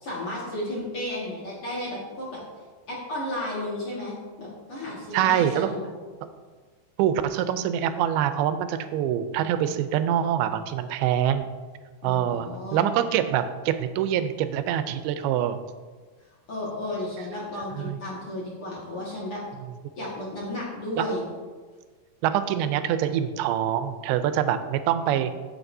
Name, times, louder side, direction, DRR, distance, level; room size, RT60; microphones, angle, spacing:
voice 1, 0.0-2.4 2.9-5.9 12.0-12.9 16.5-19.4 20.0-21.3, left 1 dB, 45° left, -6 dB, 2.2 m, -33 dB
voice 2, 5.1-5.7 6.2-6.3 7.0-11.5 12.0-15.6 17.8-18.0 21.0-21.1 22.2-25.3, right 10 dB, 90° right, 10 dB, 2.5 m, -25 dB
15.5 x 6.4 x 2.7 m, 1.4 s
omnidirectional pair, 4.3 m